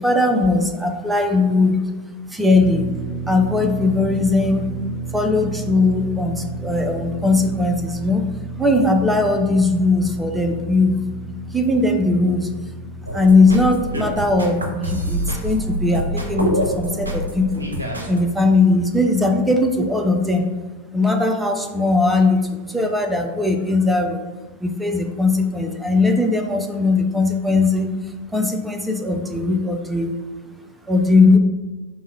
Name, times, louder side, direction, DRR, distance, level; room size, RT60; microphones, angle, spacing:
voice 1, 0.0-1.8 2.3-2.9 3.2-4.8 5.1-8.2 8.6-12.5 13.1-17.7 18.1-20.5 20.9-24.3 24.6-27.9 28.3-30.1 30.9-31.4, left 3 dB, 5° right, 4 dB, 0.4 m, -19 dB
sound 1, 2.5-20.1, right 3 dB, 30° left, 1.2 m, -34 dB
sound 2, 13.1-18.2, right 1 dB, 80° right, 0.5 m, -26 dB
3.5 x 2.2 x 4.3 m, 1.3 s
figure-of-eight pair, 90°, 0 cm